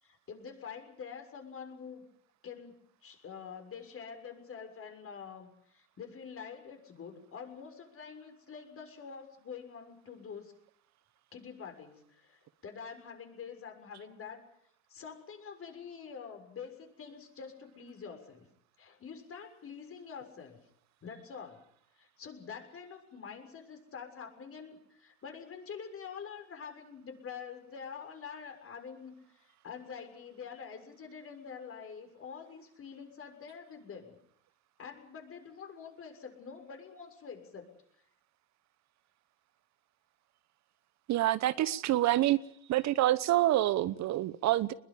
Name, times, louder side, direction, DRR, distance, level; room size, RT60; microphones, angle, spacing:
voice 1, 0.0-2.0 2.4-10.5 11.3-14.4 14.9-18.5 18.8-20.6 21.0-21.6 22.0-34.2 34.8-37.7, left 6 dB, 35° left, 6.6 m, -46 dB
voice 2, 41.1-42.4 42.7-44.7, right 14 dB, 45° right, 1.0 m, -27 dB
22.5 x 21.5 x 8.6 m
hypercardioid pair, 90°, 37 cm